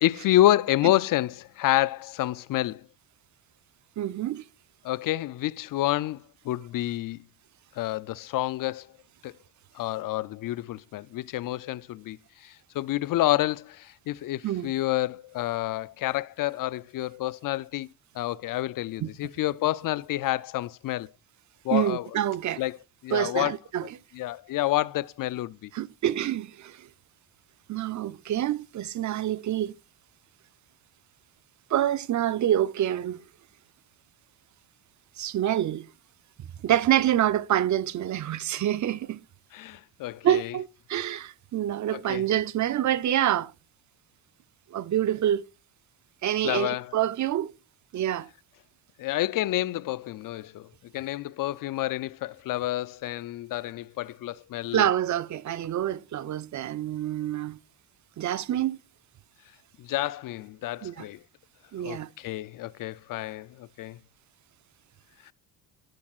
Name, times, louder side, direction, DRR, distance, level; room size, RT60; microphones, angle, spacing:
voice 1, 0.0-2.9 4.8-7.3 7.8-8.9 9.2-9.3 9.7-17.9 18.2-21.1 21.6-22.1 22.6-22.8 23.0-23.6 24.1-25.7 39.5-40.5 41.9-42.2 46.4-46.9 49.0-50.7 50.9-54.9 59.8-61.2 61.8-64.0 65.3-65.4, left 15 dB, 55° left, 0.5 m, -28 dB
voice 2, 4.0-4.4 14.4-14.7 19.0-19.1 21.7-22.6 23.1-23.8 25.7-26.9 27.7-29.7 31.7-33.2 35.2-35.9 36.6-39.2 40.2-43.5 44.7-45.4 46.2-47.5 47.9-48.3 54.7-57.6 58.2-58.8 60.8-61.1 61.7-62.1, right 11 dB, 45° right, 0.5 m, -27 dB
11.5 x 11.0 x 2.4 m
cardioid pair, 110°, 41 cm